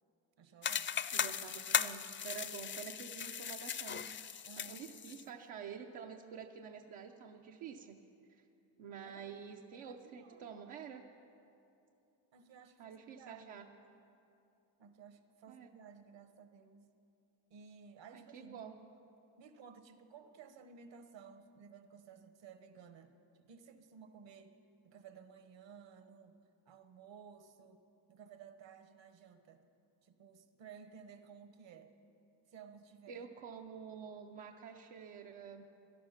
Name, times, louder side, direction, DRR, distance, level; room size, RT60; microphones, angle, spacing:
voice 1, 0.4-0.9 4.4-4.9 9.0-9.3 9.8-10.5 12.3-13.5 14.8-16.9 17.5-18.6 19.4-23.1 23.4-24.6 24.8-26.4 26.7-27.8 28.1-29.6 30.0-31.9 32.5-33.3, right 6 dB, 65° right, 9 dB, 1.3 m, -56 dB
sound 1, 0.6-5.2, left 8 dB, 25° left, 0.4 m, -38 dB
voice 2, 1.1-8.0 8.3-8.4 8.8-11.0 12.8-13.7 15.5-15.7 18.1-18.7 33.1-35.7, right 7 dB, 85° right, 2 dB, 0.9 m, -49 dB
17.0 x 12.0 x 5.8 m, 2.8 s
cardioid pair, 85°, 47 cm